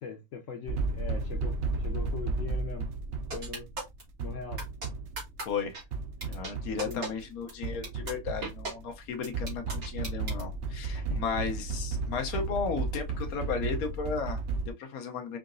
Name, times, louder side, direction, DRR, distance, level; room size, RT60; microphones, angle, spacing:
voice 1, 0.0-2.9 3.3-3.7 4.2-4.6 6.9-7.1 10.9-11.2, left 5 dB, 65° left, 1.0 m, -41 dB
sound 1, 0.7-14.7, right 3 dB, 60° right, 0.8 m, -34 dB
sound 2, 3.3-4.0 4.6-4.9 5.2-5.4 5.7-5.8 6.2-6.5 6.8-7.1 7.5-7.6 7.8-8.1 8.4-8.7 9.2-10.4, right 3 dB, 85° right, 2.4 m, -36 dB
voice 2, 5.5-5.8 6.2-15.4, left 5 dB, 85° left, 1.2 m, -35 dB
4.9 x 2.7 x 2.5 m
omnidirectional pair, 1.5 m